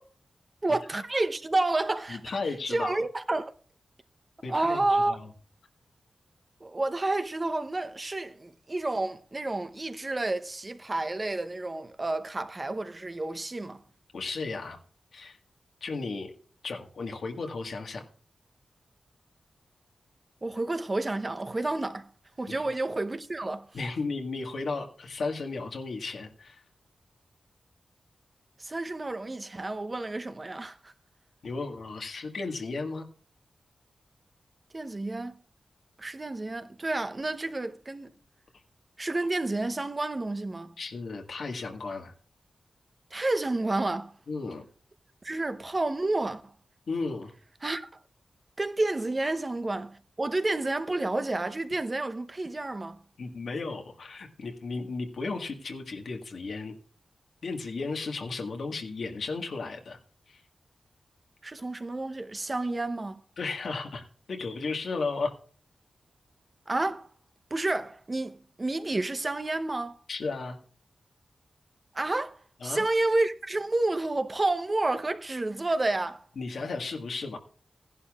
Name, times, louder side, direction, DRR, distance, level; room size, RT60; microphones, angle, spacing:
voice 1, 0.6-2.2 2.7-3.5 4.5-5.2 6.6-13.8 20.4-22.1 22.4-23.7 28.6-30.9 34.7-35.4 36.0-38.2 39.0-40.7 43.1-44.1 45.2-46.4 47.6-47.9 48.6-53.0 61.4-63.2 66.7-67.1 67.5-70.0 71.9-76.3, right 2 dB, 35° right, 0.8 m, -30 dB
voice 2, 2.1-3.0 4.4-5.3 14.1-14.8 15.1-15.4 15.8-16.3 16.6-18.0 22.5-22.7 23.7-26.6 31.4-33.1 40.8-42.1 44.3-44.6 46.9-47.3 53.2-56.7 57.4-60.0 60.3-60.4 63.4-65.3 70.1-70.6 72.6-72.8 76.4-77.4, left 3 dB, 75° left, 1.6 m, -34 dB
15.5 x 11.0 x 2.4 m
cardioid pair, 65°, 0 cm